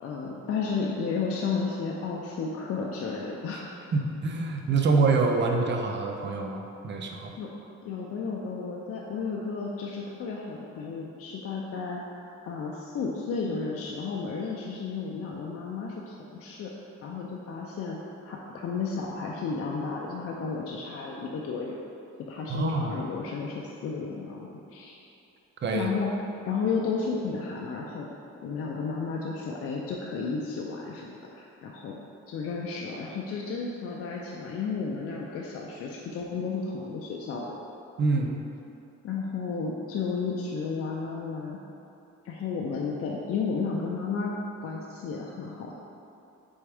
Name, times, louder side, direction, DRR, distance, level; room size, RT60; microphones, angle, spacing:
voice 1, 0.0-3.7 7.4-7.5 7.8-16.7 17.0-18.0 18.2-21.8 22.3-24.9 25.7-26.1 26.5-28.1 28.4-32.0 32.3-37.6 39.0-41.6 42.2-44.3 44.6-45.7, left 5 dB, 50° left, -2 dB, 0.4 m, -33 dB
voice 2, 3.9-7.4 22.5-22.9 25.6-25.9 38.0-38.4, right 3 dB, 40° right, 3 dB, 0.5 m, -26 dB
4.2 x 3.5 x 3.4 m, 2.7 s
cardioid pair, 90°, 30 cm